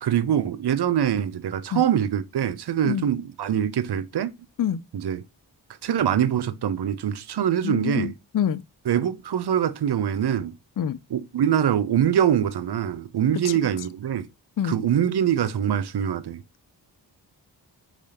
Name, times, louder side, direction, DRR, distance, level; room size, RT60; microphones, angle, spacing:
voice 1, 0.0-4.3 4.9-5.2 5.8-8.1 8.9-10.5 11.1-14.3 14.6-16.4, right 9 dB, 65° right, 0.6 m, -24 dB
voice 2, 7.6-8.6 10.8-11.0 13.4-13.5 14.6-14.8, left 9 dB, 50° left, 0.4 m, -26 dB
4.9 x 3.4 x 2.7 m
cardioid pair, 50°, 44 cm